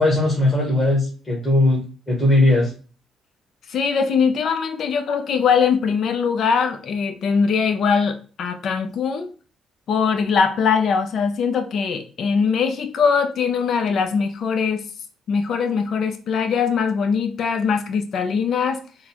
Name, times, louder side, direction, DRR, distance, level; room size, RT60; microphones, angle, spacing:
voice 1, 0.0-2.7, left 2 dB, 20° left, -5 dB, 1.5 m, -18 dB
voice 2, 3.7-9.3 9.9-14.8 15.3-18.8, left 6 dB, 60° left, 6 dB, 0.7 m, -21 dB
3.8 x 2.3 x 4.4 m, 0.37 s
cardioid pair, 100°, 0 cm